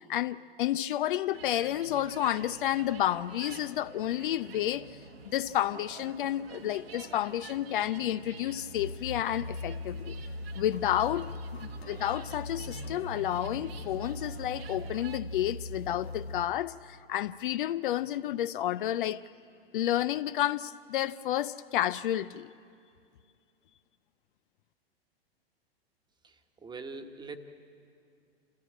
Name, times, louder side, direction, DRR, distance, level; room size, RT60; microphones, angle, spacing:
voice 1, 0.0-5.0 5.2-10.2 10.5-11.3 11.6-19.3 19.7-22.5, left 12 dB, 55° left, 0.5 m, -31 dB
sound 1, 1.3-15.2, right 5 dB, 70° right, 1.5 m, -48 dB
sound 2, 8.7-16.5, left 1 dB, 80° left, 1.0 m, -40 dB
voice 2, 26.2-27.4, right 4 dB, 15° right, 1.2 m, -43 dB
28.0 x 14.5 x 8.8 m
figure-of-eight pair, 100°, 31 cm